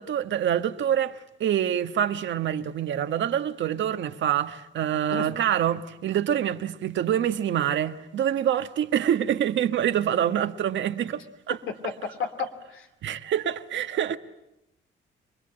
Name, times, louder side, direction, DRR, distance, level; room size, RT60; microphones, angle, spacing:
voice 1, 0.0-11.2 11.5-11.6 13.0-14.2, right 10 dB, 70° right, 1.4 m, -26 dB
voice 2, 11.7-12.9, left 5 dB, 85° left, 2.9 m, -32 dB
26.5 x 22.0 x 8.9 m
cardioid pair, 90°, 20 cm